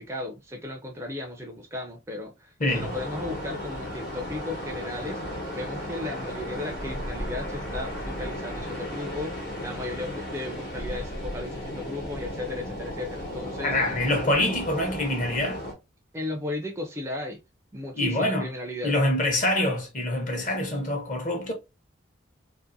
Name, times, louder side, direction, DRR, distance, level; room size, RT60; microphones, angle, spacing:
voice 1, 0.0-13.7 16.1-17.4 17.7-18.9, left 2 dB, 15° right, 0.3 m, -35 dB
voice 2, 2.6-2.9 13.6-15.6 17.9-18.5 18.8-21.5, left 1 dB, 40° left, 0.8 m, -25 dB
sound 1, 2.7-15.7, equal, 65° left, 1.1 m, -35 dB
2.6 x 2.4 x 2.5 m
head